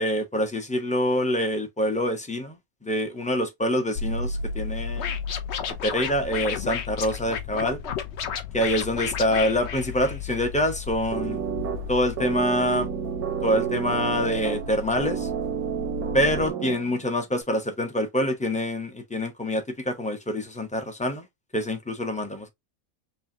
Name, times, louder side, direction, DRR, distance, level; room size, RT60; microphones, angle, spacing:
voice 1, 0.0-2.6 2.8-5.1 5.8-7.8 8.5-11.4 11.9-12.9 13.4-15.3 16.1-21.3 21.5-22.5, equal, 10° left, 0.5 m, -26 dB
sound 1, 4.0-16.5, left 4 dB, 85° left, 1.1 m, -35 dB
Scratching (performance technique), 5.0-10.5, left 8 dB, 55° left, 0.9 m, -32 dB
sound 2, 11.1-17.1, right 10 dB, 85° right, 1.3 m, -31 dB
5.5 x 2.4 x 2.6 m
omnidirectional pair, 1.5 m